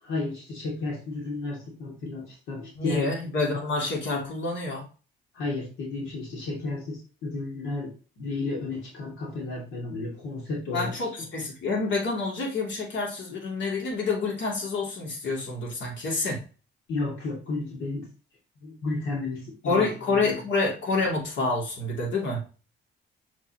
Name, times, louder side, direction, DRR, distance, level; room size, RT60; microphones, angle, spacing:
voice 1, 0.0-3.1 5.3-10.9 16.9-18.1 18.6-20.4, left 3 dB, 90° left, -2 dB, 2.6 m, -32 dB
voice 2, 2.8-4.8 10.7-16.4 19.6-22.4, left 3 dB, 70° left, -2 dB, 2.9 m, -28 dB
6.9 x 4.6 x 3.0 m, 0.34 s
cardioid pair, 90°, 20 cm